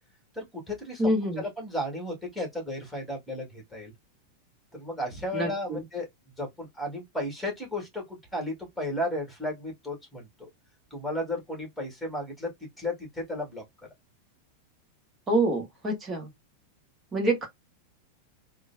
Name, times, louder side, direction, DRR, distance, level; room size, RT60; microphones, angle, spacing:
voice 1, 0.3-1.1 1.4-3.9 4.7-6.1 6.4-10.5 10.9-13.6, left 1 dB, ahead, 1.8 m, -34 dB
voice 2, 1.0-1.4 5.3-5.8 15.3-16.3 17.1-17.5, right 1 dB, 20° right, 1.2 m, -26 dB
3.6 x 2.2 x 2.6 m
figure-of-eight pair, 90°, 0 cm